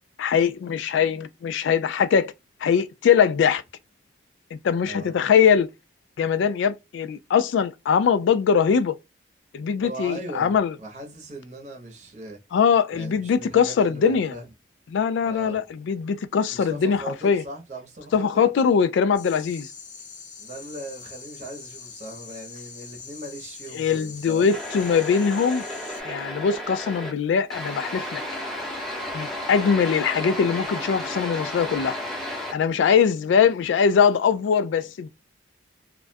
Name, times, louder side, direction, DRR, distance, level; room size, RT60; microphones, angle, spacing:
voice 1, 0.2-2.3 2.6-3.6 4.5-5.7 6.2-9.0 9.5-10.7 12.5-14.3 14.9-17.4 18.1-19.7 23.7-25.6 26.0-28.2 29.1-32.0 32.5-35.1, left 6 dB, 80° left, 0.3 m, -21 dB
voice 2, 4.8-5.2 9.8-12.4 12.9-14.5 15.2-15.6 16.5-18.4 20.4-24.5, right 1 dB, 40° right, 0.7 m, -39 dB
sound 1, 19.1-26.0, left 5 dB, 40° left, 0.6 m, -43 dB
sound 2, 24.5-27.1 27.5-32.5, left 1 dB, ahead, 0.7 m, -33 dB
2.3 x 2.2 x 2.4 m
head